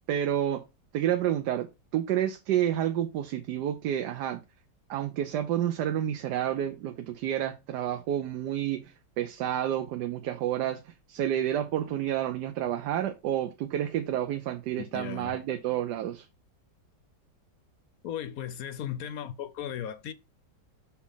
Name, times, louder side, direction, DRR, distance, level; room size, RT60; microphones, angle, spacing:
voice 1, 0.1-0.6 0.9-1.7 1.9-4.4 4.9-16.3, right 11 dB, 75° right, 1.2 m, -29 dB
voice 2, 14.8-15.4 18.0-20.1, left 10 dB, 70° left, 0.9 m, -36 dB
5.7 x 4.3 x 5.5 m
omnidirectional pair, 1.9 m